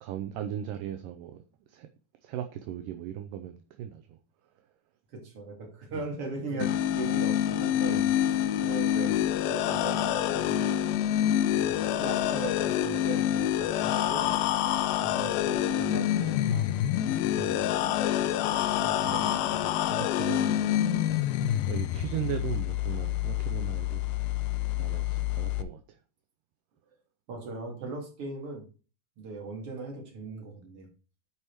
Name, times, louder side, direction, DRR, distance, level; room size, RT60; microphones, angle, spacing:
voice 1, 0.0-1.4 1.7-1.9 2.2-4.2 5.9-6.0 6.5-6.7 7.8-8.2 17.4-18.0 19.0-24.1 24.8-26.0, right 10 dB, 75° right, 2.1 m, -38 dB
voice 2, 5.1-8.0 8.6-10.6 11.5-14.3 15.0-16.7 18.5-19.7 27.3-28.6 29.2-30.9, right 3 dB, 40° right, 3.1 m, -39 dB
sound 1, 6.6-25.6, left 11 dB, 80° left, 2.4 m, -27 dB
8.7 x 4.7 x 4.6 m
omnidirectional pair, 4.3 m